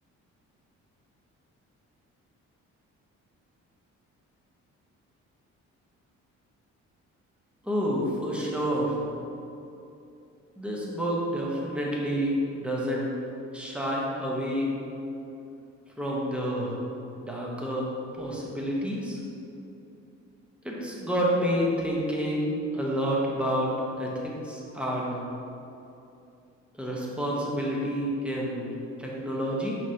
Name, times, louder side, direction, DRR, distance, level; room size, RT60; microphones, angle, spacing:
voice 1, 7.6-9.0 10.6-13.1 13.5-14.7 16.0-16.8 17.2-19.2 20.6-23.7 24.0-25.2 26.7-29.8, equal, 5° right, -4 dB, 1.2 m, -29 dB
5.9 x 5.5 x 2.9 m, 2.8 s
cardioid pair, 90°, 30 cm